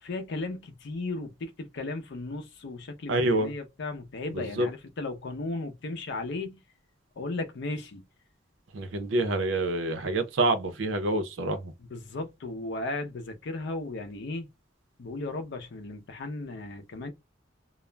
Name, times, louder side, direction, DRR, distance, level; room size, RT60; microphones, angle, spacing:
voice 1, 0.0-6.6 7.2-8.0 11.8-14.5 15.0-17.1, left 2 dB, 60° left, 0.5 m, -35 dB
voice 2, 3.1-3.5 4.3-4.7 8.7-11.7, right 2 dB, 75° right, 0.6 m, -27 dB
2.3 x 2.0 x 3.2 m
head